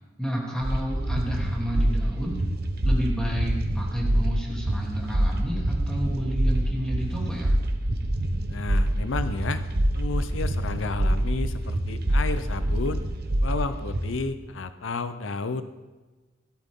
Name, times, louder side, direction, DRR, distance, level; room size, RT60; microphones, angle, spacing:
voice 1, 0.2-2.4 2.8-7.5, equal, 5° left, -3 dB, 3.1 m, -30 dB
sound 1, 0.6-14.2, right 1 dB, 55° right, 1.1 m, -26 dB
voice 2, 8.5-9.6 9.9-13.1 13.4-15.6, left 3 dB, 80° left, 11 dB, 0.6 m, -31 dB
16.0 x 13.0 x 3.7 m, 1.2 s
head